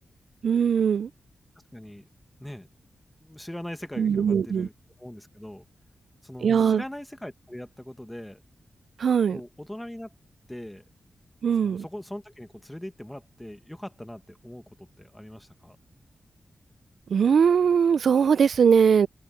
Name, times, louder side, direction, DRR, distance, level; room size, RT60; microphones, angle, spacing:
voice 1, 0.4-1.1 4.0-4.7 6.4-6.8 9.0-9.4 11.4-11.8 17.1-19.1, right 7 dB, 75° right, 0.4 m, -20 dB
voice 2, 1.7-2.1 2.4-2.7 3.2-4.7 5.0-5.6 6.2-8.4 9.3-10.1 10.5-10.8 11.6-15.8, left 1 dB, 5° left, 1.6 m, -40 dB
wide cardioid pair, 150°, 0 cm